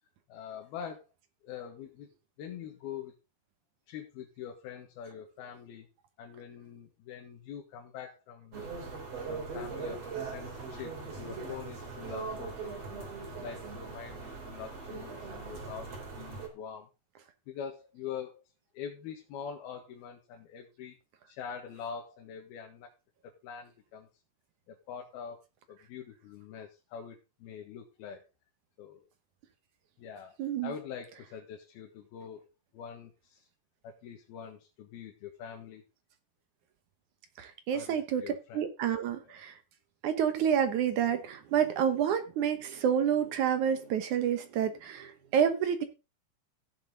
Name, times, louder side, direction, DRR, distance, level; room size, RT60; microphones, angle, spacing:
voice 1, 0.3-1.0 1.4-2.1 2.4-3.2 3.9-5.9 6.2-8.6 9.3-10.0 10.3-13.1 13.4-16.9 17.5-18.4 18.7-21.0 21.3-22.9 23.2-24.1 24.7-25.4 25.7-28.3 28.8-29.1 30.0-30.4 30.6-32.5 32.7-33.5 33.8-35.8 37.7-38.7, left 7 dB, 80° left, 2 dB, 3.4 m, -44 dB
sound 1, 8.5-16.5, right 4 dB, 45° right, 4.0 m, -40 dB
voice 2, 30.4-30.7 37.4-38.2 38.5-39.6 40.0-45.8, right 8 dB, 65° right, 9 dB, 2.2 m, -29 dB
15.5 x 7.3 x 3.8 m, 0.28 s
omnidirectional pair, 4.3 m